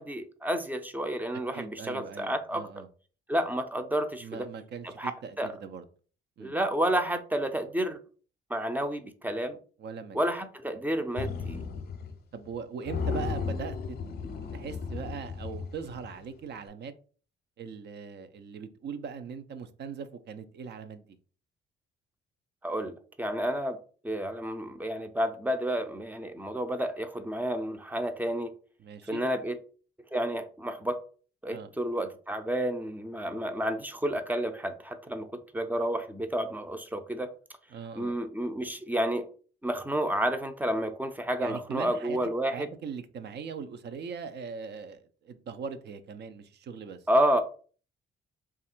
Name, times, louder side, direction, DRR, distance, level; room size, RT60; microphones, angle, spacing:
voice 1, 0.0-2.8 3.3-4.5 4.8-5.1 5.4-5.5 6.4-8.0 8.5-9.6 10.1-11.6 22.6-23.8 24.0-28.5 29.1-29.6 30.1-31.0 31.4-37.3 38.0-39.3 39.6-42.7 47.1-47.4, right 1 dB, 10° right, 0.5 m, -30 dB
voice 2, 1.5-2.9 4.2-5.8 6.4-6.5 9.8-10.2 12.3-14.0 14.5-16.9 17.6-21.2 28.8-29.2 31.5-31.7 37.7-38.2 41.4-42.2 42.5-47.0, right 6 dB, 60° right, 0.5 m, -40 dB
sound 1, 11.2-12.2 12.4-12.5 12.8-16.2, left 5 dB, 50° left, 0.6 m, -35 dB
3.2 x 2.4 x 4.3 m
cardioid pair, 90°, 20 cm